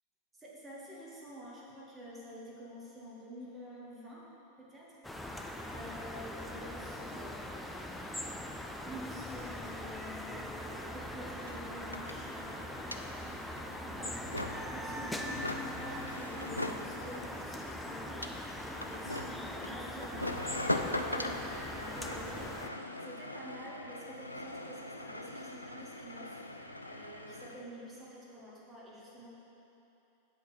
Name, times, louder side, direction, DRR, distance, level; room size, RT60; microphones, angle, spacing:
voice 1, 0.3-4.3 4.6-8.0 8.8-13.4 13.9-14.2 14.5-15.4 15.8-18.6 18.8-22.5 23.0-26.4 26.9-29.3, equal, 15° right, -6 dB, 1.7 m, -48 dB
sound 1, 5.0-22.7, left 1 dB, 5° left, 0.5 m, -41 dB
sound 2, 11.4-27.6, left 1 dB, 85° left, 0.3 m, -41 dB
8.2 x 5.4 x 4.5 m, 3.0 s
figure-of-eight pair, 90°, 0 cm